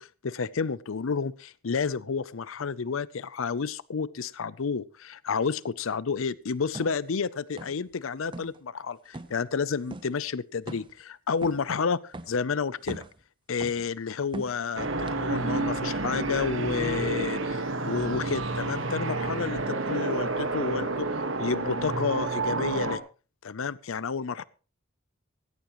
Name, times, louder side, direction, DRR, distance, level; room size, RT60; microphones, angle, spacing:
voice 1, 0.0-13.0 13.5-21.1 21.4-23.0 23.4-24.4, left 5 dB, 75° left, 0.6 m, -30 dB
sound 1, 6.7-7.0 7.6-7.9 8.2-8.6 9.1-9.4 9.9-10.1 10.7-11.0 11.4-11.7 12.1-12.4 12.8-13.2 13.6-13.9 14.3-14.7 15.1-15.2, right 1 dB, 25° right, 0.8 m, -40 dB
sound 2, 14.7-23.0, right 2 dB, 65° right, 1.6 m, -30 dB
17.0 x 16.5 x 3.0 m
head